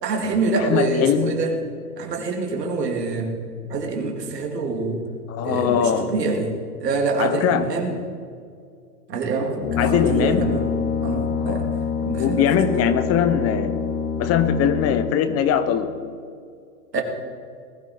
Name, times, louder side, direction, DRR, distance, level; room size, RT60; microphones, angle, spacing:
voice 1, 0.0-1.5 2.0-3.3 3.7-5.0 5.4-6.5 6.8-7.9 9.1-10.6 11.0-11.7 12.0-12.5 16.9-17.0, right 3 dB, 85° right, 2 dB, 2.8 m, -25 dB
voice 2, 0.6-1.3 5.3-6.1 7.2-7.7 9.8-10.5 11.4-11.7 12.2-13.7 14.2-15.9, left 8 dB, 30° left, 11 dB, 0.9 m, -21 dB
Brass instrument, 9.6-15.3, left 6 dB, 50° left, 2.0 m, -26 dB
19.5 x 12.5 x 4.5 m, 2.3 s
hypercardioid pair, 115°, 47 cm